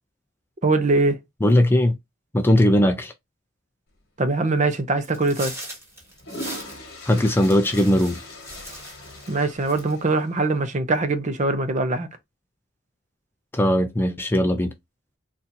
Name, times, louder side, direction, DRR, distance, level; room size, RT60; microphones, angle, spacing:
voice 1, 0.6-1.2 4.2-5.5 9.3-12.1, right 3 dB, 35° right, 0.6 m, -22 dB
voice 2, 1.4-2.0 2.3-3.1 7.1-8.2 13.5-14.7, left 1 dB, 10° left, 0.3 m, -19 dB
sound 1, 4.5-4.7 5.9-10.5, left 1 dB, 50° left, 1.5 m, -40 dB
sound 2, 5.0-9.4 9.7-10.1, right 1 dB, 15° right, 1.6 m, -39 dB
4.2 x 2.5 x 2.6 m
head